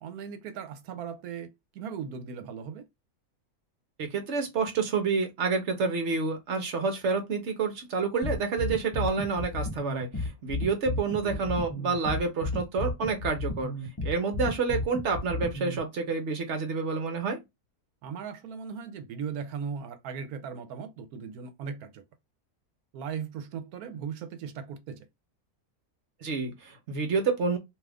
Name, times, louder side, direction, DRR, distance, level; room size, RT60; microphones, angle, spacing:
voice 1, 0.0-2.8 11.1-11.4 18.0-22.0 22.9-25.1, right 6 dB, 80° right, 1.1 m, -38 dB
voice 2, 4.0-13.7 14.0-17.4 26.2-27.6, right 4 dB, 55° right, 0.9 m, -29 dB
sound 1, 8.2-15.8, left 2 dB, 30° left, 0.4 m, -33 dB
2.6 x 2.4 x 3.3 m
omnidirectional pair, 1.6 m